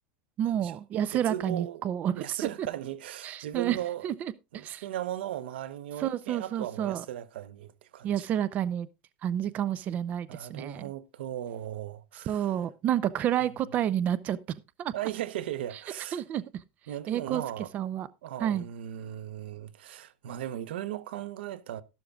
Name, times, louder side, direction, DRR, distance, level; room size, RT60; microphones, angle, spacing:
voice 1, 0.4-2.2 3.2-3.8 4.0-4.8 6.0-7.0 8.0-8.9 9.2-10.9 12.3-14.4 14.8-14.9 16.1-16.4 17.1-17.4 17.7-18.1 18.4-18.7, right 10 dB, 30° right, 0.5 m, -29 dB
voice 2, 1.1-1.8 2.1-4.1 4.5-8.2 10.3-12.5 14.9-16.2 16.9-17.7 18.2-21.8, right 12 dB, 90° right, 0.9 m, -37 dB
13.0 x 12.0 x 2.3 m
supercardioid pair, 155°, 6 cm